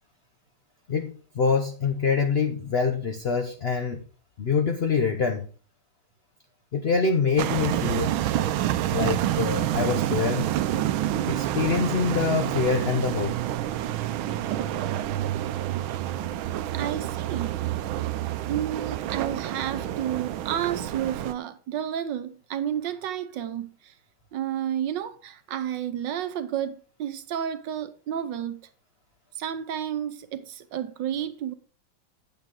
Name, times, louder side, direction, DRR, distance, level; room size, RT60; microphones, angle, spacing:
voice 1, 0.9-4.0 4.4-5.5 6.7-8.1 8.9-10.5 11.2-13.3 15.9-16.0, left 5 dB, 65° left, 0.6 m, -25 dB
sound 1, 7.4-21.3, right 12 dB, 85° right, 1.4 m, -28 dB
voice 2, 16.7-17.5 18.5-23.9 24.3-28.6 29.4-31.5, right 10 dB, 70° right, 1.4 m, -31 dB
8.9 x 8.1 x 3.7 m
omnidirectional pair, 2.2 m